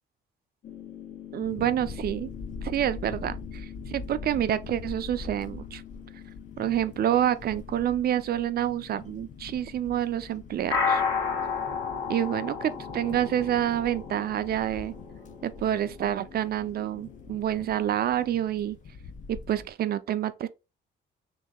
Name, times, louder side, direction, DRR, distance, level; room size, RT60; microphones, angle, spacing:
sound 1, 0.6-18.4, left 5 dB, 70° left, 1.1 m, -37 dB
voice 1, 1.3-2.3 2.6-5.8 6.6-11.0 12.1-14.9 15.4-18.8 19.3-20.5, right 11 dB, 50° right, 0.4 m, -28 dB
sound 2, 1.4-19.7, left 4 dB, 40° left, 0.5 m, -44 dB
3.0 x 2.7 x 3.5 m
cardioid pair, 90°, 20 cm